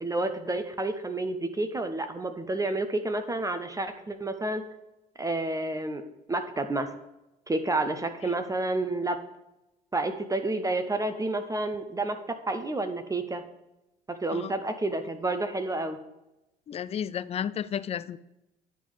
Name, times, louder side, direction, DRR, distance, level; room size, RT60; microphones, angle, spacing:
voice 1, 0.0-4.6 5.2-6.0 6.3-6.9 7.5-9.2 9.9-13.4 14.1-16.0, right 2 dB, 15° right, 8 dB, 0.7 m, -30 dB
voice 2, 16.7-18.2, left 9 dB, 35° left, 17 dB, 0.4 m, -32 dB
10.0 x 3.5 x 5.0 m, 0.93 s
hypercardioid pair, 60°, 19 cm